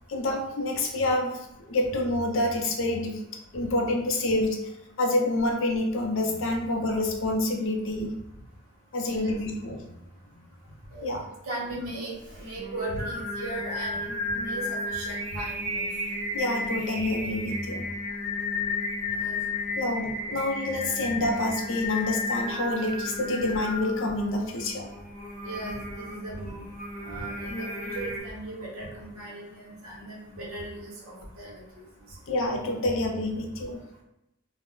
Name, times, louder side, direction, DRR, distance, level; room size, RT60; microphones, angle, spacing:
voice 1, 0.1-3.2 3.5-4.6 5.0-8.1 8.9-10.0 11.0-11.3 16.3-17.9 19.8-24.9 32.3-33.8, left 2 dB, 60° left, 2 dB, 0.5 m, -27 dB
voice 2, 9.0-9.3 10.9-15.8 19.1-19.4 20.3-20.5 25.4-26.7 27.0-31.6, right 1 dB, 80° right, -3 dB, 1.0 m, -37 dB
Singing, 12.2-28.2, left 2 dB, 35° right, 0.9 m, -33 dB
2.4 x 2.0 x 3.6 m, 0.88 s
head